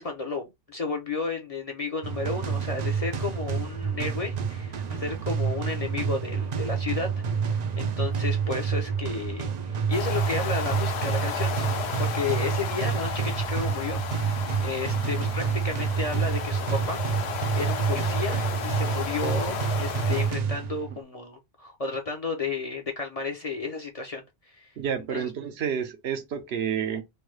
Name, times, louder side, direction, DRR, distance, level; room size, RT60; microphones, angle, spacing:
voice 1, 0.0-7.1 7.4-11.6 12.0-14.3 14.6-17.1 17.5-24.7 25.1-25.3, left 4 dB, 40° left, 0.6 m, -33 dB
sound 1, 2.0-21.0, right 6 dB, 55° right, 0.4 m, -28 dB
sound 2, 9.9-20.4, left 7 dB, 75° left, 0.9 m, -34 dB
voice 2, 24.8-27.0, right 8 dB, 70° right, 0.9 m, -29 dB
3.2 x 2.2 x 3.1 m
omnidirectional pair, 1.1 m